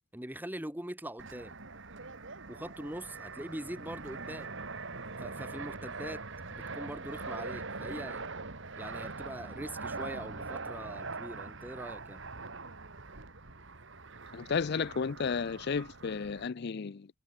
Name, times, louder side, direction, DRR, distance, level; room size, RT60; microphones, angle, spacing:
voice 1, 0.1-1.6 2.5-4.5 5.2-8.2 8.8-12.2, right 1 dB, 10° right, 1.7 m, -42 dB
Fixed-wing aircraft airplane, 1.2-16.5, right 3 dB, 60° right, 2.5 m, -42 dB
voice 2, 14.3-17.1, left 5 dB, 50° left, 0.5 m, -33 dB
head